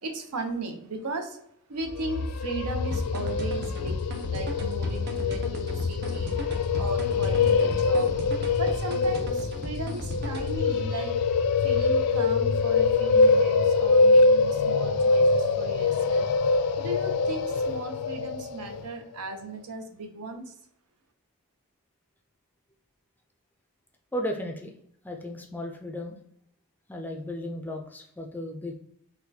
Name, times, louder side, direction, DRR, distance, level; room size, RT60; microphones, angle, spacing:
voice 1, 0.0-1.4 1.7-6.5 6.8-8.1 8.6-11.2 11.6-16.3 16.8-20.5, right 2 dB, 90° right, 5 dB, 0.7 m, -36 dB
sound 1, 1.9-18.9, left 4 dB, 90° left, 0.3 m, -24 dB
sound 2, 2.9-10.6, equal, 45° right, 0.6 m, -37 dB
voice 2, 24.1-24.7 25.0-26.2 26.9-28.7, left 1 dB, 10° left, 3 dB, 0.3 m, -34 dB
4.1 x 2.2 x 2.7 m, 0.72 s
head